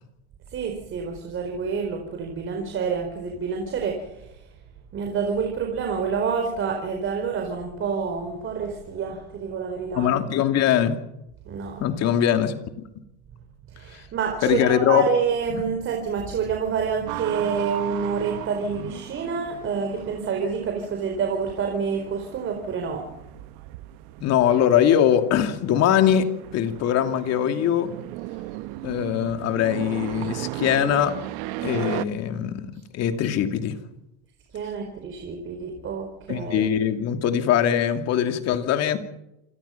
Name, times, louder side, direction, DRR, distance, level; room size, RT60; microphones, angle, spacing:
voice 1, 0.5-4.4 4.9-10.2 11.4-11.8 13.7-23.1 32.7-32.8 34.5-36.7, right 6 dB, 40° right, 3 dB, 4.6 m, -28 dB
voice 2, 9.9-11.0 11.8-12.5 14.4-15.0 15.5-15.6 24.2-26.3 26.5-27.9 28.8-31.1 31.6-32.7 32.9-33.8 36.3-39.0, left 10 dB, 50° left, 7 dB, 2.7 m, -21 dB
sound 1, 17.1-32.1, right 17 dB, 70° right, 1.1 m, -36 dB
28.0 x 17.5 x 5.9 m, 0.88 s
supercardioid pair, 120°, 32 cm